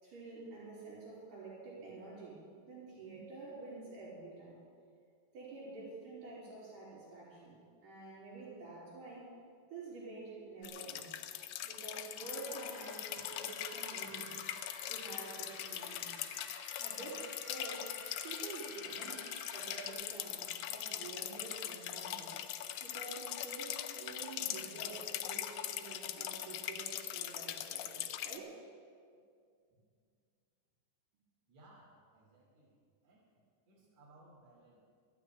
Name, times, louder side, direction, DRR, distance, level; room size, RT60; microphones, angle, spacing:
voice 1, 0.0-4.6 5.3-7.5 7.8-9.3 9.7-11.2 11.6-14.4 14.9-16.3 16.8-17.9 18.2-19.2 19.5-22.4 22.8-28.6, right 3 dB, 75° right, -11 dB, 5.1 m, -48 dB
sound 1, 10.6-28.4, left 12 dB, 80° left, 1.9 m, -42 dB
sound 2, 12.1-19.9, left 2 dB, 55° left, 4.7 m, -52 dB
voice 2, 31.5-33.3 33.7-34.8, right 2 dB, 60° right, -7 dB, 4.3 m, -62 dB
13.0 x 8.2 x 9.3 m, 2.2 s
omnidirectional pair, 3.7 m